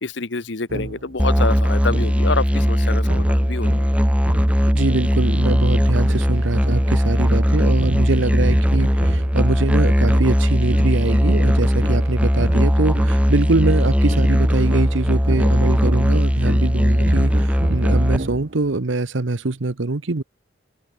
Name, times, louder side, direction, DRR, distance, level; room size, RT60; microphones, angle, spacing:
voice 1, 0.0-3.7, left 3 dB, 60° left, 1.1 m, -26 dB
sound 1, 0.7-9.4 10.1-18.8, right 2 dB, 45° right, 0.9 m, -31 dB
Musical instrument, 1.2-18.2, equal, 5° right, 1.3 m, -18 dB
voice 2, 4.7-20.2, right 2 dB, 70° right, 0.9 m, -23 dB
head